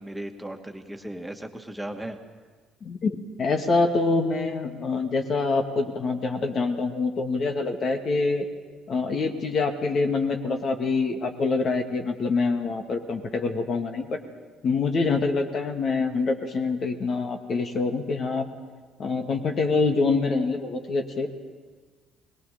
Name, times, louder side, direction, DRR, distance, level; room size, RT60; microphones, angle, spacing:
voice 1, 0.0-2.2, right 1 dB, 5° right, 4 dB, 2.3 m, -36 dB
voice 2, 2.8-8.5 8.9-14.2 14.6-18.4 19.0-21.3, left 3 dB, 45° left, 5 dB, 2.2 m, -25 dB
22.0 x 21.0 x 6.9 m, 1.5 s
figure-of-eight pair, 50°, 0 cm